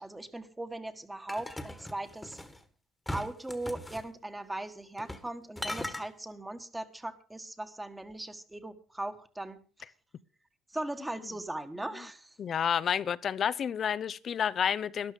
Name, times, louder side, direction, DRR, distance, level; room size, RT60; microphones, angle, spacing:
voice 1, 0.0-2.4 3.1-9.6 10.7-12.4, right 1 dB, 10° right, 1.6 m, -39 dB
sound 1, 1.3-2.6 3.1-4.1 5.0-5.3 5.6-6.1, left 1 dB, 10° left, 1.6 m, -39 dB
voice 2, 12.4-15.1, left 8 dB, 50° left, 0.6 m, -30 dB
13.0 x 11.5 x 5.2 m
cardioid pair, 100°, 0 cm